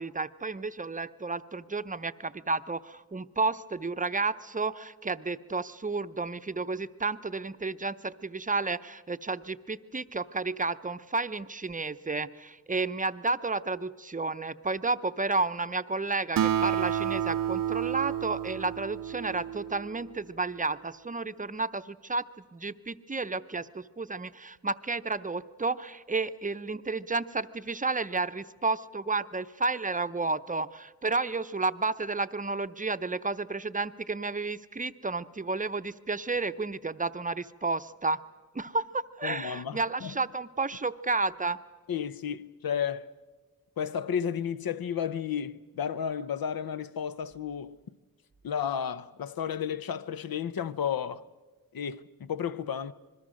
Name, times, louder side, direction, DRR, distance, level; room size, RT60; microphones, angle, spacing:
voice 1, 0.0-38.2 38.5-41.6, right 3 dB, 20° right, 0.6 m, -31 dB
Acoustic guitar, 16.4-20.1, right 10 dB, 70° right, 0.6 m, -30 dB
voice 2, 39.2-40.2 41.9-43.1 43.8-47.8 48.4-51.3 51.7-52.9, left 8 dB, 75° left, 0.7 m, -32 dB
26.5 x 21.0 x 6.4 m
wide cardioid pair, 75°, 35 cm